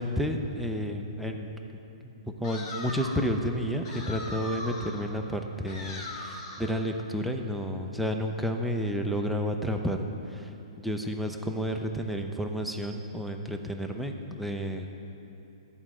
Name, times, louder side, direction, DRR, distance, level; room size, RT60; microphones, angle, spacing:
voice 1, 0.0-1.5 2.4-10.5 10.8-14.9, equal, ahead, 2 dB, 0.4 m, -31 dB
sound 1, 2.4-3.3 3.8-5.1 5.7-6.8, left 1 dB, 45° left, 1.2 m, -39 dB
10.5 x 4.3 x 6.1 m, 2.9 s
hypercardioid pair, 150°, 3 cm